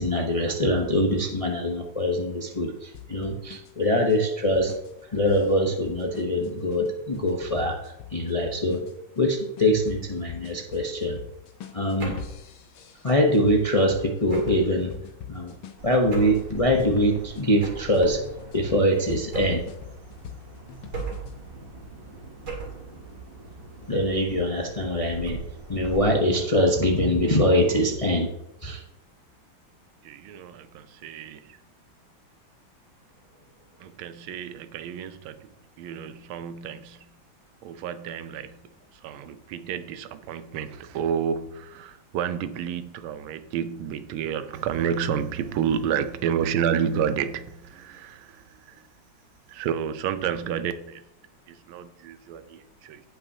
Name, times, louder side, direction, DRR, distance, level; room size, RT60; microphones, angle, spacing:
voice 1, 0.0-4.7 5.1-8.8 9.2-11.2 11.7-12.2 13.0-14.9 15.3-15.6 15.8-18.2 18.5-19.6 23.9-25.4 25.7-28.3 28.6-28.8, equal, 40° left, 0.5 m, -23 dB
sound 1, 2.9-17.4 17.9-21.4, left 9 dB, 75° left, 1.6 m, -43 dB
sound 2, 12.0-12.4 14.3-14.7 16.1-16.5 17.6-18.0 19.3-19.8 20.9-21.4 22.5-22.9, right 4 dB, 50° right, 2.5 m, -35 dB
Bird vocalization bird call bird song, 15.8-26.0, right 3 dB, 35° right, 1.1 m, -42 dB
voice 2, 30.0-31.6 33.8-37.1 37.6-38.6 39.0-48.8 49.5-51.0 51.5-53.0, right 8 dB, 90° right, 1.5 m, -30 dB
17.0 x 5.7 x 2.8 m
omnidirectional pair, 2.2 m